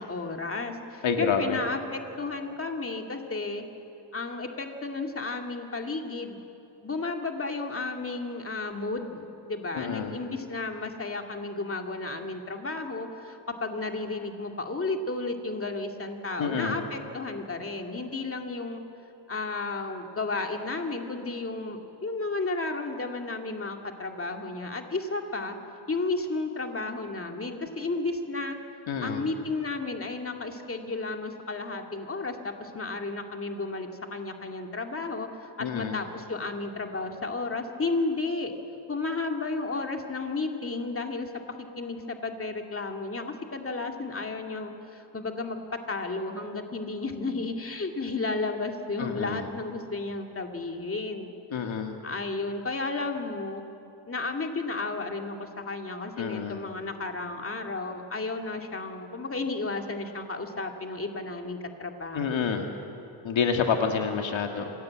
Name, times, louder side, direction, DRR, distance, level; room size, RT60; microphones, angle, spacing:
voice 1, 0.0-3.6 4.1-6.4 6.8-18.8 19.3-25.6 25.9-28.6 29.0-38.5 38.9-41.3 41.6-45.6 45.9-51.3 52.0-53.6 54.1-62.3, left 3 dB, 30° left, 3 dB, 2.2 m, -33 dB
voice 2, 1.0-1.6 9.8-10.1 16.4-16.8 28.9-29.2 35.6-36.0 49.0-49.5 51.5-52.0 56.2-56.6 62.1-62.7 63.2-64.7, left 6 dB, 75° left, 4 dB, 1.9 m, -28 dB
26.5 x 16.5 x 8.7 m, 2.8 s
cardioid pair, 85°, 46 cm